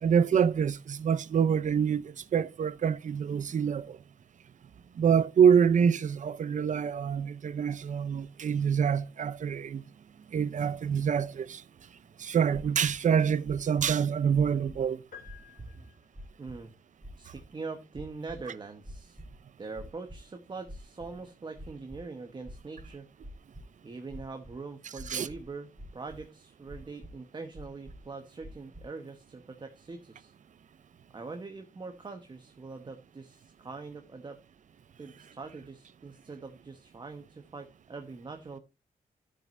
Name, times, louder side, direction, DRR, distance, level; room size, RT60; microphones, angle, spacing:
voice 1, 0.0-4.0 5.0-9.8 10.3-11.6 12.2-15.0 25.1-25.3, right 7 dB, 60° right, 0.6 m, -26 dB
sound 1, 14.7-14.9 15.2-15.7 16.1-16.6 17.0-17.4 17.9-18.4 18.8-19.4 19.7-20.2 20.7-21.2 21.5-22.0 22.4-23.6 24.1-24.5 25.0-25.5 25.8-26.2 26.7-27.1 27.5-28.1 28.4-28.8, equal, 10° right, 3.4 m, -46 dB
sound 2, 15.1-16.4, left 8 dB, 90° left, 3.1 m, -52 dB
voice 2, 16.4-16.7 17.2-19.2 19.6-23.1 23.8-30.3 31.1-34.4 35.0-38.6, right 4 dB, 30° right, 1.2 m, -43 dB
13.0 x 7.6 x 2.6 m
wide cardioid pair, 135°, 15 cm